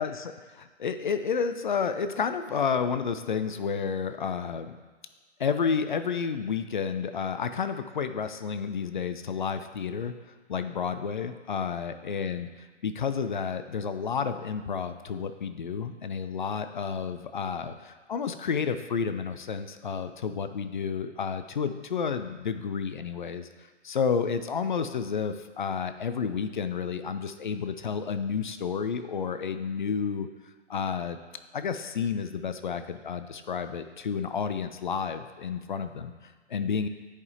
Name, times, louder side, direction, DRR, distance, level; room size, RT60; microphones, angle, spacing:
voice 1, 0.0-4.7 5.4-10.1 10.5-12.5 12.8-23.5 23.8-30.3 30.7-31.2 31.5-36.9, left 6 dB, 45° left, 10 dB, 0.4 m, -31 dB
10.5 x 5.0 x 2.8 m, 1.4 s
figure-of-eight pair, 125°, 37 cm